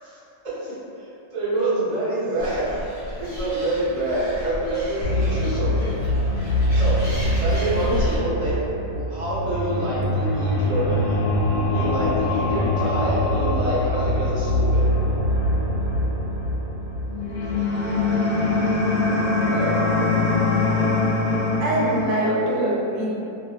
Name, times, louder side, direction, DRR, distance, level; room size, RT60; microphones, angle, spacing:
voice 1, 0.4-2.8 3.2-5.9 6.7-7.0 7.4-8.7 8.9-11.2 11.7-15.0 19.5-19.8 22.2-22.7, right 1 dB, 40° right, -10 dB, 0.5 m, -27 dB
Animal, 2.4-8.2, left 1 dB, 10° left, 0.6 m, -34 dB
sound 1, 5.0-22.0, left 2 dB, 75° left, 1.1 m, -23 dB
voice 2, 21.6-23.1, equal, 80° right, -5 dB, 1.2 m, -24 dB
2.7 x 2.3 x 2.7 m, 2.6 s
omnidirectional pair, 1.9 m